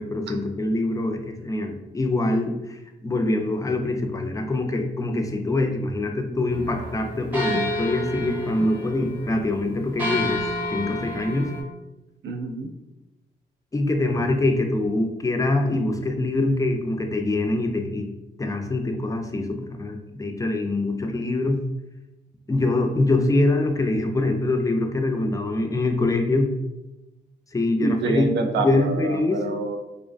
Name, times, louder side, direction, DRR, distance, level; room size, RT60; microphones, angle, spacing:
voice 1, 0.0-10.4 10.7-11.5 13.7-18.1 18.4-21.6 22.5-26.5 27.5-28.3 28.6-29.4, left 2 dB, 15° left, 4 dB, 0.4 m, -24 dB
sound 1, 6.5-11.6, left 1 dB, 10° right, 1.0 m, -30 dB
voice 2, 12.2-12.7 27.8-29.8, right 3 dB, 60° right, 5 dB, 0.4 m, -27 dB
2.5 x 2.2 x 2.3 m, 0.99 s
cardioid pair, 65°, 20 cm